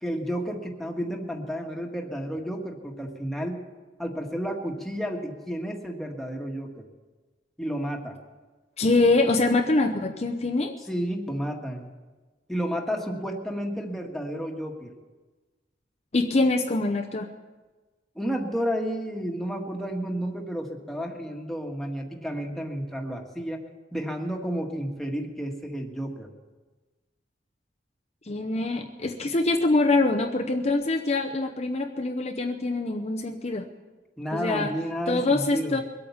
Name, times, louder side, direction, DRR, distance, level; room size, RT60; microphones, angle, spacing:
voice 1, 0.0-3.6 4.0-6.9 7.6-8.2 10.9-11.9 12.5-14.9 18.1-23.6 23.9-26.3 34.2-35.8, equal, ahead, 1 dB, 1.7 m, -31 dB
voice 2, 8.8-10.7 16.1-17.3 28.2-33.7 34.3-34.7 35.1-35.8, left 2 dB, 35° left, 3 dB, 0.8 m, -24 dB
22.0 x 8.7 x 7.1 m, 1.3 s
head